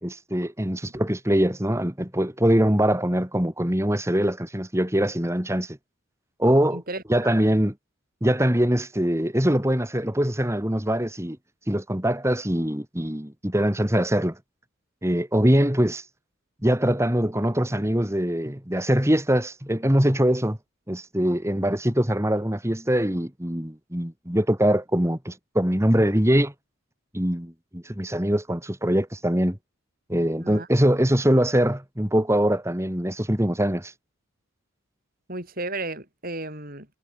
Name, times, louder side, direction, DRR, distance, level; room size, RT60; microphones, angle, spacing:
voice 1, 0.0-5.8 6.4-6.8 7.1-7.7 8.2-11.4 11.7-14.4 15.0-16.0 16.6-20.6 20.9-26.5 27.1-29.6 30.1-33.9, equal, 15° right, 2.4 m, -23 dB
voice 2, 6.7-7.0 30.4-30.7 35.3-36.9, right 2 dB, 45° right, 7.8 m, -33 dB
head